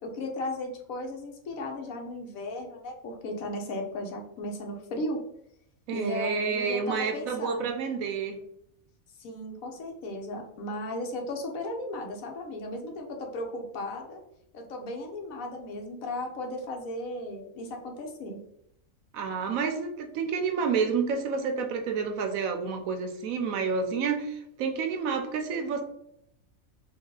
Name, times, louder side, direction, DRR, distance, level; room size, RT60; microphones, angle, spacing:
voice 1, 0.0-5.2 5.9-7.7 9.2-14.2 14.5-18.4, left 1 dB, 75° left, 2 dB, 1.2 m, -36 dB
voice 2, 5.9-8.4 19.1-25.8, right 5 dB, 80° right, 5 dB, 1.1 m, -29 dB
3.8 x 2.3 x 3.7 m, 0.75 s
omnidirectional pair, 1.5 m